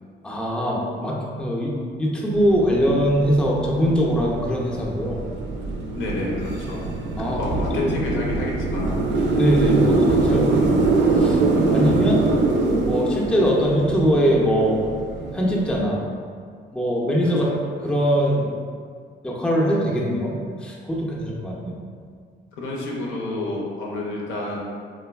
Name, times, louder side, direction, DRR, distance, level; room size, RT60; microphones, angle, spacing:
voice 1, 0.2-5.2 7.2-7.4 7.7-7.9 9.4-11.4 11.7-12.2 12.8-14.8 15.3-16.0 16.7-17.5 17.8-18.5 19.2-21.8, equal, 5° left, -3 dB, 0.4 m, -22 dB
sound 1, 2.3-15.8, right 3 dB, 65° right, 0.4 m, -23 dB
voice 2, 5.9-6.9 7.2-9.0 17.2-17.5 22.6-24.6, left 2 dB, 80° left, -2 dB, 0.6 m, -29 dB
3.2 x 2.2 x 2.2 m, 2.1 s
cardioid pair, 90°, 20 cm